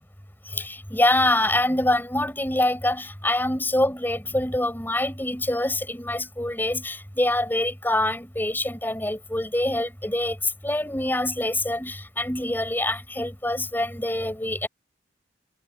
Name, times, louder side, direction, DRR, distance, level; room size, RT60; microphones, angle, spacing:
voice 1, 0.5-10.4 10.6-14.7, left 1 dB, 10° left, 6.1 m, -25 dB
head